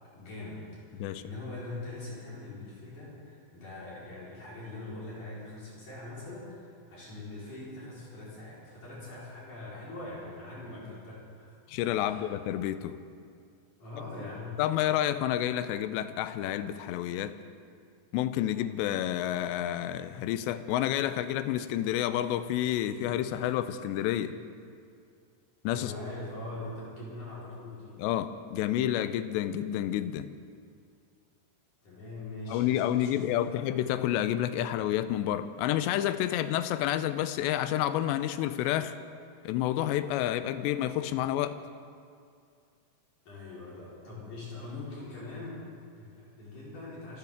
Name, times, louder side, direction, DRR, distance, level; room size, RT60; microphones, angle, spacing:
voice 1, 0.1-0.6 0.9-11.6 12.0-12.3 13.8-14.6 25.7-28.0 31.8-33.6 43.3-47.2, left 2 dB, 45° left, -8 dB, 5.4 m, -42 dB
voice 2, 11.7-13.0 14.6-17.4 18.1-24.4 25.6-25.9 28.0-30.3 32.5-39.0 39.5-41.6, left 12 dB, 85° left, 12 dB, 2.7 m, -29 dB
26.5 x 14.0 x 3.6 m, 2.3 s
omnidirectional pair, 5.1 m